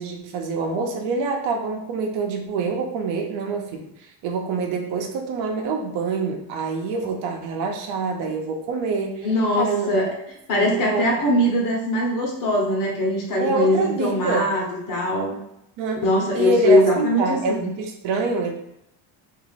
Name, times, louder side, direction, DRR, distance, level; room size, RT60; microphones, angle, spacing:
voice 1, 0.0-9.3 9.6-10.0 10.6-11.1 11.5-11.6 13.4-14.5 15.8-18.5, right 4 dB, 70° right, 3 dB, 0.9 m, -26 dB
voice 2, 9.2-10.2 10.5-15.3 16.0-17.6, left 1 dB, 40° left, -2 dB, 1.2 m, -21 dB
3.7 x 2.8 x 4.0 m, 0.79 s
cardioid pair, 180°, 47 cm